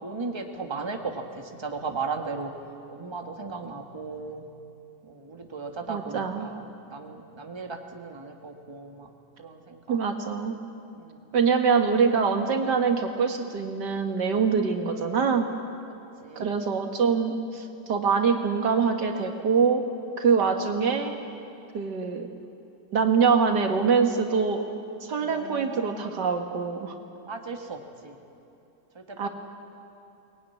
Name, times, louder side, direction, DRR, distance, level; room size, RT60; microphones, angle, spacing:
voice 1, 0.0-2.5 2.9-4.4 5.0-9.1 9.4-10.0 10.9-11.2 16.2-16.5 25.2-26.0 27.3-28.2 28.9-29.3, right 4 dB, 15° right, 3 dB, 1.6 m, -36 dB
voice 2, 5.9-6.5 9.9-10.6 11.3-15.5 16.4-19.8 20.2-21.2 21.7-22.3 22.9-24.6 25.0-27.0 29.2-29.3, right 5 dB, 80° right, 5 dB, 2.3 m, -24 dB
23.5 x 20.0 x 9.8 m, 2.9 s
omnidirectional pair, 1.8 m